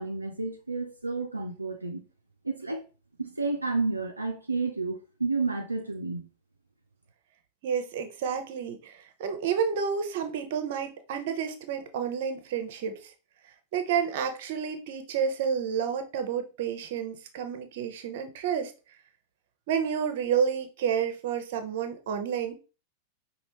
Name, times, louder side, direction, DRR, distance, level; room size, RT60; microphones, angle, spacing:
voice 1, 0.0-2.0 2.4-2.8 3.2-6.3, right 3 dB, 85° right, 0.5 m, -31 dB
voice 2, 7.6-13.1 13.7-18.7 19.7-22.6, right 7 dB, 50° right, 0.8 m, -30 dB
5.3 x 2.9 x 3.1 m
figure-of-eight pair, 90°, 0 cm